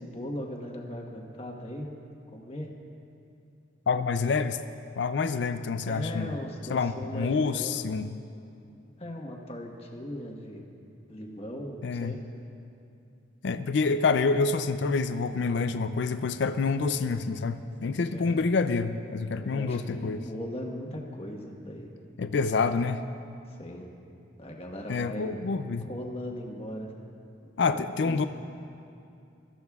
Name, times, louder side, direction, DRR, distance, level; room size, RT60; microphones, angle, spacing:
voice 1, 0.0-1.9 2.3-2.7 5.9-7.9 9.0-10.6 11.1-12.2 18.1-18.5 19.4-21.9 23.6-23.9 24.4-25.4 25.8-26.9 27.7-28.3, equal, 30° left, 1 dB, 1.3 m, -38 dB
voice 2, 3.9-4.6 5.0-6.3 6.7-8.1 11.8-12.1 13.4-20.2 22.2-23.0 24.9-25.9 27.6-28.2, left 4 dB, 60° left, 10 dB, 0.4 m, -27 dB
23.5 x 14.0 x 2.4 m, 2.6 s
head